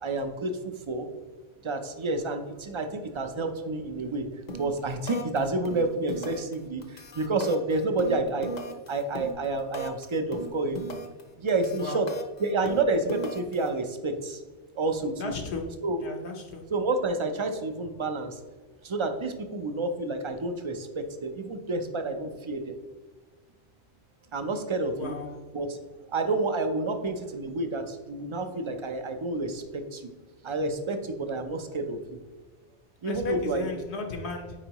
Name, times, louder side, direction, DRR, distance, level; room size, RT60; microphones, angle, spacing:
voice 1, 0.0-1.1 1.6-8.5 8.9-11.0 11.4-12.1 12.4-14.4 14.8-15.3 15.8-16.0 16.7-18.4 18.8-22.8 24.3-25.1 25.5-25.8 26.1-30.1 30.4-32.2 33.0-33.8, right 2 dB, 35° right, 7 dB, 0.5 m, -29 dB
sound 1, 4.5-4.8 5.1-5.4 5.7-6.5 6.8-10.0 10.3-11.2 11.5-13.7, right 1 dB, 45° left, 0.7 m, -37 dB
voice 2, 15.2-15.6 16.0-16.6 24.9-25.3 33.0-34.5, left 4 dB, 70° left, 3 dB, 1.2 m, -34 dB
8.8 x 4.5 x 3.0 m, 1.3 s
omnidirectional pair, 1.2 m